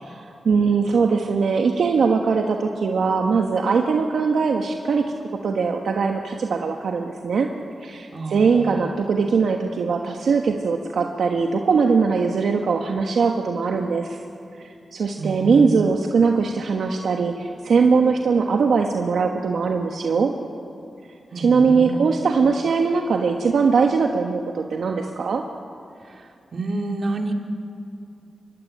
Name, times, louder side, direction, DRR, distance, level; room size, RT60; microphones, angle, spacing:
voice 1, 0.0-5.0 5.4-7.5 7.8-14.2 14.6-20.3 21.3-25.4, right 5 dB, 80° right, 3 dB, 1.3 m, -21 dB
voice 2, 8.1-8.9 15.2-15.9 21.3-22.2 26.5-27.3, right 2 dB, 60° right, 3 dB, 2.5 m, -29 dB
25.5 x 14.5 x 10.0 m, 2.6 s
cardioid pair, 80°, 0 cm